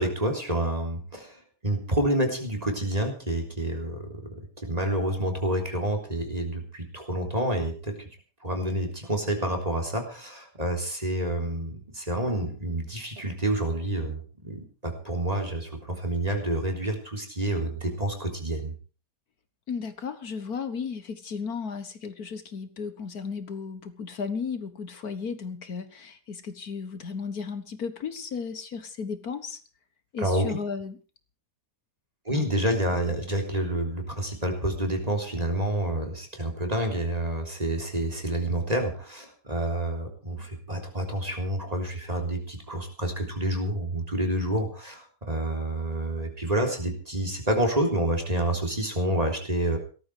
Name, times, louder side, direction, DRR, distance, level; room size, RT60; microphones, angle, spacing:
voice 1, 0.0-8.1 8.4-18.7 30.2-30.6 32.3-49.8, right 1 dB, 25° right, 3 dB, 3.6 m, -28 dB
voice 2, 19.7-29.6 30.1-31.0 32.3-32.4, left 5 dB, 65° left, 10 dB, 1.9 m, -34 dB
18.0 x 13.5 x 4.8 m, 0.37 s
omnidirectional pair, 1.7 m